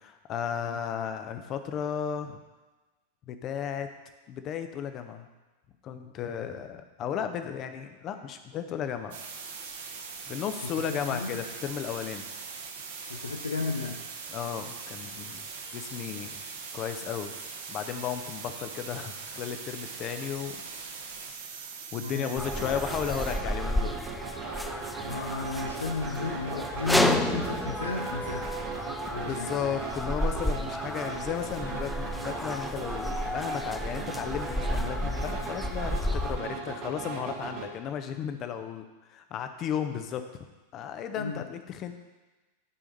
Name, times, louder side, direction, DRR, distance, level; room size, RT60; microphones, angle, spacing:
voice 1, 0.0-2.4 3.3-3.9 4.3-5.3 5.8-9.2 10.3-12.3 14.3-15.5 15.7-16.4 16.7-17.3 17.7-20.6 21.9-23.9 29.2-40.2 40.7-41.9, left 8 dB, 35° left, 8 dB, 0.8 m, -34 dB
sound 1, 9.1-23.4, right 5 dB, 60° right, 1.3 m, -41 dB
voice 2, 13.1-14.0 22.0-22.5 25.0-28.5 29.1-29.8 41.2-41.4, left 4 dB, 75° left, 1 dB, 0.8 m, -33 dB
sound 2, 22.4-36.4, left 1 dB, 5° left, 0.5 m, -32 dB
sound 3, 22.4-37.7, right 4 dB, 40° right, 1.4 m, -38 dB
11.5 x 5.0 x 5.4 m, 1.2 s
figure-of-eight pair, 90°, 0 cm